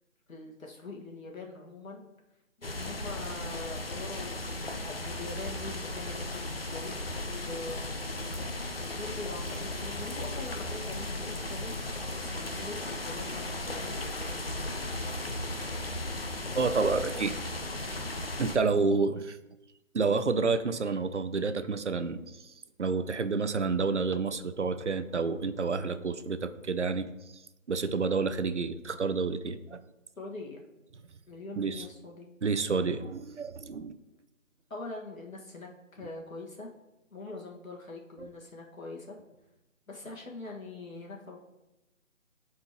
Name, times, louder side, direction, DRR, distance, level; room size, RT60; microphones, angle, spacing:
voice 1, 0.3-2.1 2.6-15.0 30.2-30.6 31.3-32.3 34.7-36.7 37.1-39.2 39.9-41.4, left 3 dB, 90° left, -1 dB, 1.9 m, -43 dB
sound 1, 2.6-18.6, left 2 dB, 45° left, 0.7 m, -36 dB
voice 2, 16.5-17.3 18.4-19.4 19.9-22.5 22.8-27.1 27.7-29.8 31.6-31.9 32.4-33.9 38.2-38.3, right 4 dB, 60° right, 11 dB, 0.6 m, -29 dB
11.5 x 4.3 x 3.0 m, 0.98 s
figure-of-eight pair, 180°, 40 cm